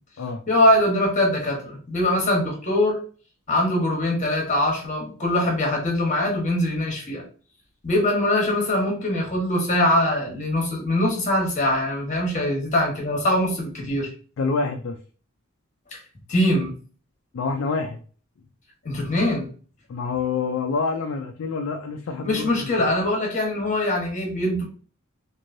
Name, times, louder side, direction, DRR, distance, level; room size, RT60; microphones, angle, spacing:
voice 1, 0.5-3.0 3.5-7.2 7.8-14.1 16.3-16.7 18.8-19.5 22.2-24.6, left 1 dB, 35° left, -1 dB, 1.1 m, -22 dB
voice 2, 14.4-15.0 17.3-18.0 19.9-22.7, left 4 dB, 65° left, 4 dB, 0.3 m, -27 dB
3.1 x 2.6 x 2.5 m, 0.40 s
head